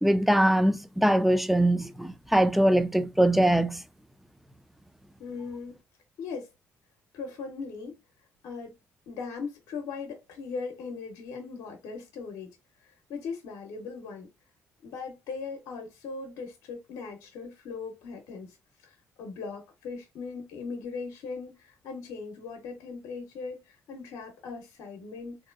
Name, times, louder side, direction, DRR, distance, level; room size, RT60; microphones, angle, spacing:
voice 1, 0.0-3.8, right 1 dB, 5° right, 0.4 m, -22 dB
voice 2, 5.2-5.8 6.2-6.5 7.1-8.0 8.4-8.7 9.1-14.3 14.8-25.5, left 4 dB, 80° left, 0.7 m, -39 dB
3.6 x 2.7 x 2.4 m
supercardioid pair, 60°, 6 cm